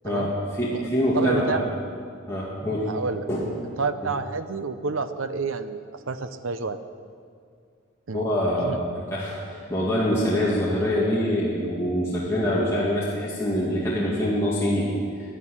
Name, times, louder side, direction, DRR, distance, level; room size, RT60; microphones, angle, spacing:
voice 1, 0.0-1.6 2.3-2.9 3.3-3.5 8.1-14.9, equal, 15° left, -7 dB, 2.2 m, -25 dB
voice 2, 1.1-1.6 2.9-3.3 3.8-6.8 8.1-8.2 8.6-8.8, right 4 dB, 70° right, 10 dB, 0.7 m, -29 dB
11.5 x 11.0 x 10.0 m, 2.2 s
head